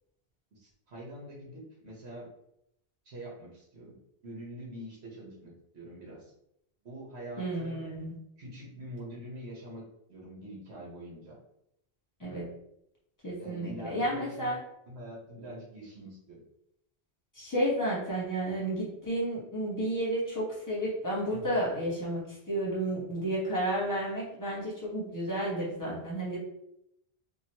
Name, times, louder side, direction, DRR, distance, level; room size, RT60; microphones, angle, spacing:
voice 1, 0.5-2.3 3.0-4.0 4.2-6.3 6.8-7.8 8.4-9.8 10.1-11.4 13.4-14.5 14.9-16.4 21.3-21.5, right 1 dB, 80° right, -4 dB, 1.3 m, -44 dB
voice 2, 7.4-8.1 12.2-12.4 13.2-14.6 17.3-22.2 22.5-26.4, right 1 dB, 20° left, -6 dB, 1.1 m, -31 dB
2.9 x 2.6 x 2.8 m, 0.79 s
omnidirectional pair, 1.1 m